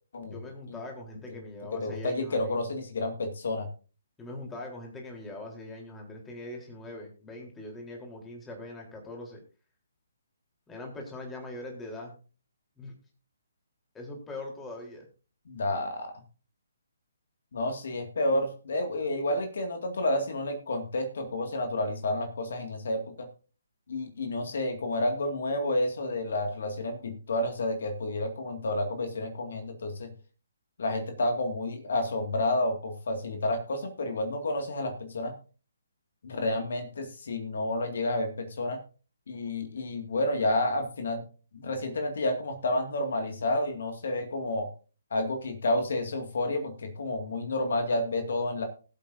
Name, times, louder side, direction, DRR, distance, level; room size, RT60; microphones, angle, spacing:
voice 1, 0.2-2.6 4.2-9.4 10.7-12.1 12.8-12.9 13.9-15.1, left 2 dB, 10° left, 0 dB, 3.8 m, -41 dB
voice 2, 1.7-3.7 15.5-16.1 17.5-23.3 23.9-30.1 30.8-35.3 36.2-38.8 39.3-41.2 41.5-44.7 45.1-48.6, left 1 dB, 65° left, 5 dB, 2.2 m, -30 dB
20.0 x 8.1 x 2.7 m, 0.37 s
figure-of-eight pair, 140°, 0 cm